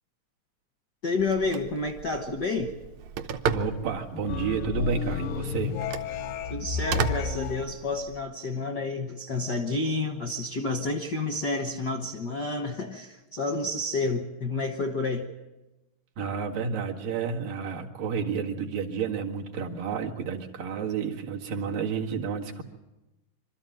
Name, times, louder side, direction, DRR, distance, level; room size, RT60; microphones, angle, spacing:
voice 1, 1.0-2.7 6.5-15.3, left 3 dB, 70° left, 5 dB, 1.0 m, -30 dB
Telephone, 1.2-8.2, right 6 dB, 70° right, 1.9 m, -35 dB
voice 2, 3.5-5.8 16.2-22.6, right 6 dB, 90° right, 0 dB, 3.5 m, -30 dB
sound 1, 4.3-7.6, left 8 dB, 90° left, 2.6 m, -32 dB
25.5 x 13.0 x 9.1 m, 1.0 s
omnidirectional pair, 3.8 m